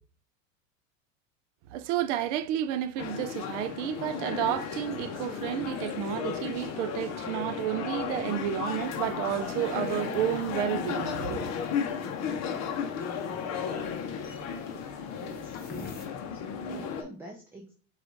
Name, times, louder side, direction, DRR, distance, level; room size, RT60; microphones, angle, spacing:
voice 1, 1.7-11.5, right 11 dB, 60° right, 0.6 m, -31 dB
sound 1, 3.0-17.0, left 7 dB, 40° left, 0.7 m, -34 dB
sound 2, 8.6-16.1, left 2 dB, 25° left, 0.9 m, -50 dB
voice 2, 15.2-15.6 16.3-17.7, right 1 dB, 5° right, 0.6 m, -45 dB
4.3 x 2.5 x 3.8 m
hypercardioid pair, 110°, 40 cm